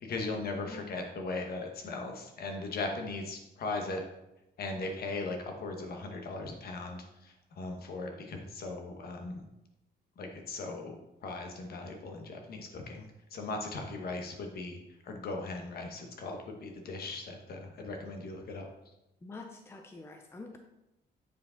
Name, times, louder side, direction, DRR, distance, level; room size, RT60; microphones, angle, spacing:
voice 1, 0.0-4.0 4.6-9.4 10.2-11.0 11.2-18.6, left 3 dB, 55° left, 3 dB, 1.2 m, -38 dB
voice 2, 0.7-1.0 19.2-20.6, left 3 dB, 15° left, 4 dB, 0.5 m, -46 dB
8.1 x 4.9 x 3.9 m, 0.91 s
cardioid pair, 165°, 18 cm